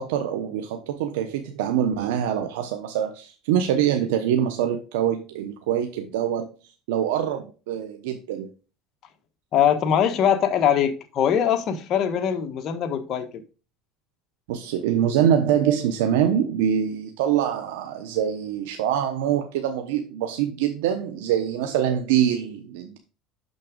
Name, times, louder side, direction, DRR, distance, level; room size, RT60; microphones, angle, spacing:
voice 1, 0.0-6.5 6.9-8.5 14.5-23.0, right 9 dB, 90° right, 0.9 m, -24 dB
voice 2, 9.5-13.4, left 9 dB, 45° left, 1.3 m, -22 dB
6.5 x 5.9 x 5.1 m
supercardioid pair, 125°, 0 cm